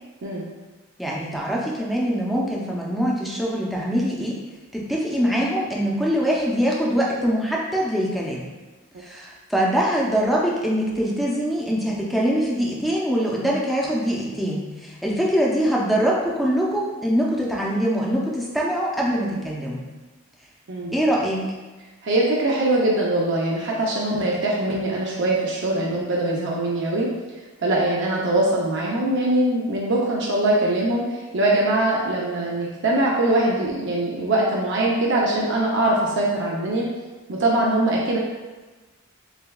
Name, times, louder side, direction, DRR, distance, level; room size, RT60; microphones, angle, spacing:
voice 1, 1.0-4.4 4.7-8.4 9.0-19.8 20.9-21.4, equal, ahead, -4 dB, 0.5 m, -23 dB
voice 2, 22.0-27.1 27.6-31.0 31.3-36.9 37.3-38.2, right 1 dB, 60° right, -3 dB, 0.6 m, -22 dB
6.7 x 2.2 x 2.3 m, 1.2 s
head